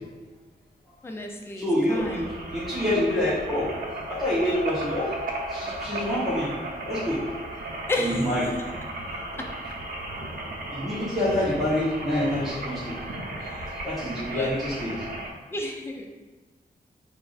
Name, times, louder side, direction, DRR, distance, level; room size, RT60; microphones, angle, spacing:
voice 1, 1.0-2.3 7.9-8.3 9.4-9.5 13.4-13.6 14.3-14.6 15.5-16.1, left 2 dB, 15° left, 2 dB, 0.4 m, -32 dB
voice 2, 1.6-3.7 4.1-5.1 5.5-6.5 6.9-7.2 8.0-8.5 10.7-12.9 13.3-13.4 13.8-15.0, left 1 dB, ahead, -9 dB, 1.0 m, -26 dB
sound 1, 1.9-15.3, right 1 dB, 60° right, 0.7 m, -35 dB
6.7 x 2.6 x 2.4 m, 1.3 s
wide cardioid pair, 150°, 16 cm